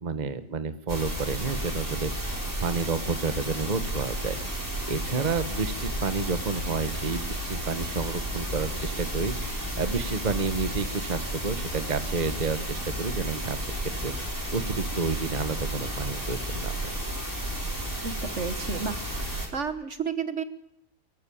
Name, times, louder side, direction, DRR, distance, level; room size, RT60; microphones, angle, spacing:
voice 1, 0.0-14.1 14.5-16.8, right 4 dB, 30° right, 10 dB, 1.2 m, -30 dB
sound 1, 0.9-19.5, right 1 dB, 10° right, 4.8 m, -32 dB
voice 2, 18.0-20.4, right 6 dB, 50° right, 10 dB, 1.5 m, -32 dB
24.0 x 15.0 x 8.6 m, 0.81 s
omnidirectional pair, 1.7 m